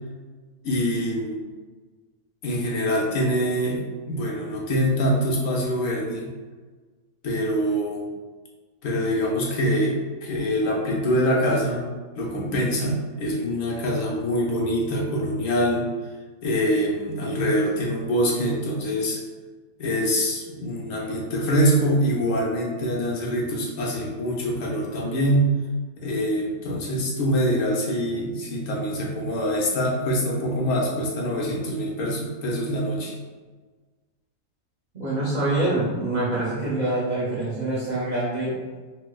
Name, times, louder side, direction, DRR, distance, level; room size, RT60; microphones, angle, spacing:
voice 1, 0.6-1.5 2.4-3.8 4.1-6.3 7.2-8.1 8.8-11.8 12.2-15.9 16.4-19.2 19.8-25.5 26.0-33.1, equal, 75° left, -3 dB, 1.1 m, -24 dB
voice 2, 34.9-38.5, right 2 dB, 40° right, -7 dB, 0.7 m, -25 dB
4.3 x 2.1 x 2.2 m, 1.4 s
omnidirectional pair, 1.4 m